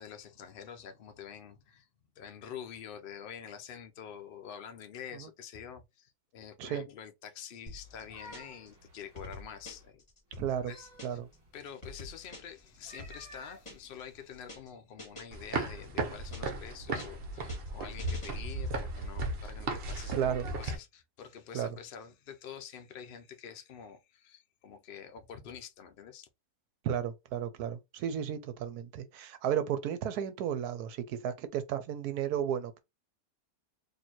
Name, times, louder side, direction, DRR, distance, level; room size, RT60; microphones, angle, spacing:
voice 1, 0.0-1.9 2.2-10.0 10.6-11.2 11.5-20.2 20.6-26.3, left 8 dB, 65° left, 0.5 m, -47 dB
sound 1, 7.7-8.7 9.0-11.4 11.7-14.0 14.3-14.7 15.0-16.7 17.0-18.8, left 2 dB, 25° left, 1.9 m, -48 dB
sound 2, 7.8-9.9 10.4-11.6 12.7-14.5, equal, 15° right, 1.9 m, -54 dB
voice 2, 10.4-10.7 11.0-11.3 20.1-20.5 21.5-21.7 26.8-32.8, right 9 dB, 75° right, 1.0 m, -33 dB
sound 3, 15.3-20.7, right 2 dB, 50° right, 0.7 m, -36 dB
4.3 x 2.7 x 2.9 m
omnidirectional pair, 1.7 m